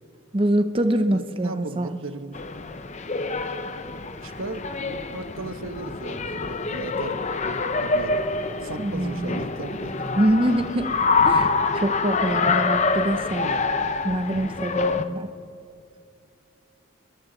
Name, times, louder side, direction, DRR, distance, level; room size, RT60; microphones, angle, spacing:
voice 1, 0.3-2.0 8.8-9.4 10.2-10.9 11.2-11.5 11.7-13.5 14.0-15.3, right 1 dB, 25° right, 8 dB, 0.7 m, -24 dB
voice 2, 1.1-2.4 4.2-7.2 7.4-8.2 8.6-10.1 13.4-13.7, right 2 dB, 75° right, 9 dB, 1.2 m, -36 dB
sound 1, 2.3-15.0, left 4 dB, 35° left, 0.7 m, -26 dB
30.0 x 22.0 x 4.0 m, 2.6 s
head